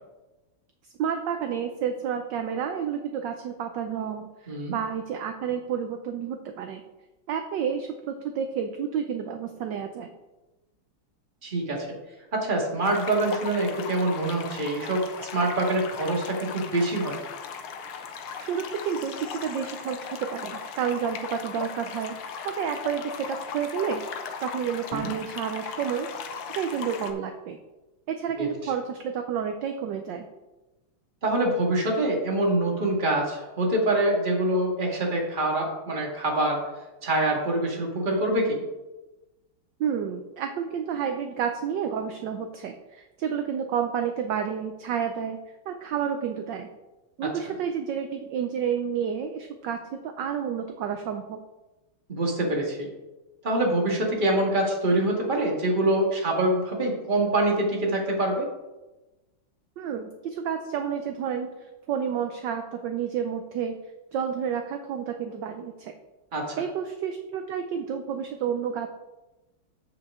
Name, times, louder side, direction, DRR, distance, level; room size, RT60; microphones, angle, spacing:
voice 1, 1.0-6.8 7.3-10.1 18.4-22.2 22.4-26.1 26.5-27.6 28.1-30.3 39.8-45.4 45.7-46.7 47.2-51.4 59.8-61.5 61.9-63.8 64.1-65.9 66.6-68.9, right 7 dB, 70° right, 6 dB, 1.2 m, -30 dB
voice 2, 11.4-11.9 12.3-17.2 24.9-25.1 28.4-28.5 31.2-36.6 37.0-38.6 52.1-52.9 53.4-58.4 66.3-66.6, right 1 dB, 25° right, 0 dB, 1.6 m, -25 dB
sound 1, 12.8-27.1, left 6 dB, 85° left, 1.7 m, -38 dB
14.0 x 4.9 x 3.6 m, 1.1 s
omnidirectional pair, 2.3 m